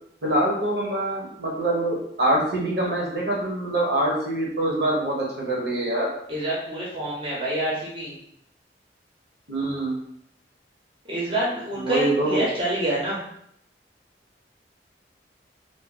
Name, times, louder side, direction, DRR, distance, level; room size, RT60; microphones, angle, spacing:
voice 1, 0.2-6.1 9.5-10.0 11.8-12.4, right 1 dB, 70° right, -3 dB, 1.0 m, -24 dB
voice 2, 6.3-8.2 11.1-13.2, right 1 dB, 30° right, -6 dB, 0.8 m, -27 dB
2.6 x 2.1 x 3.7 m, 0.71 s
head